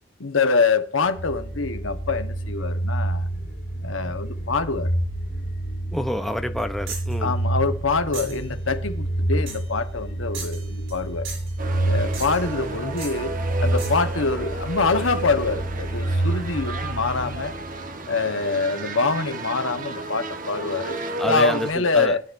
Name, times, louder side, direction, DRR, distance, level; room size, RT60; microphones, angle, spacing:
voice 1, 0.2-3.3 3.8-4.9 7.2-11.3 11.8-13.3 13.6-17.5 18.1-21.0 21.2-22.2, left 4 dB, 85° left, 1.3 m, -25 dB
sound 1, 1.1-18.0, right 1 dB, 55° left, 2.3 m, -28 dB
voice 2, 5.9-7.3 21.2-22.2, equal, ahead, 0.8 m, -27 dB
sound 2, 6.9-7.2 8.1-8.4 9.5-9.7 10.3-11.0 11.2-11.6 12.1-12.5 13.0-13.2 13.8-14.1, right 5 dB, 90° right, 7.4 m, -37 dB
sound 3, 11.6-21.7, right 2 dB, 45° right, 1.5 m, -33 dB
20.0 x 10.5 x 2.7 m
head